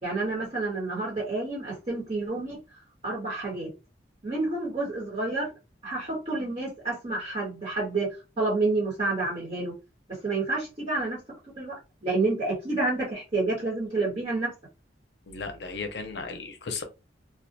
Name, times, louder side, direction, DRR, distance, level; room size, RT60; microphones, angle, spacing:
voice 1, 0.0-2.6 3.0-3.7 4.2-5.5 5.8-8.1 8.4-9.7 10.2-11.2 11.6-14.5, right 3 dB, 35° right, 1.2 m, -29 dB
voice 2, 15.3-16.8, left 4 dB, 65° left, 0.6 m, -35 dB
2.4 x 2.2 x 2.6 m
head